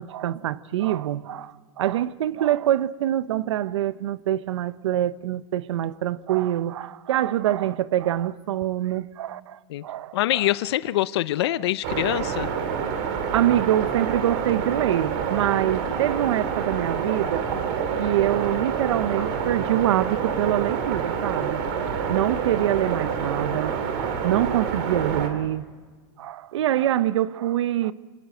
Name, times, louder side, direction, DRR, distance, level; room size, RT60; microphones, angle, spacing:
voice 1, 0.0-10.5 11.5-11.6 13.3-17.6 18.0-21.6 22.1-25.6 26.2-27.9, right 12 dB, 75° right, 0.9 m, -25 dB
voice 2, 10.1-12.5, left 15 dB, 60° left, 0.6 m, -24 dB
sound 1, 11.8-25.3, right 6 dB, 45° right, 3.1 m, -27 dB
27.5 x 17.5 x 7.8 m
supercardioid pair, 160°, 15 cm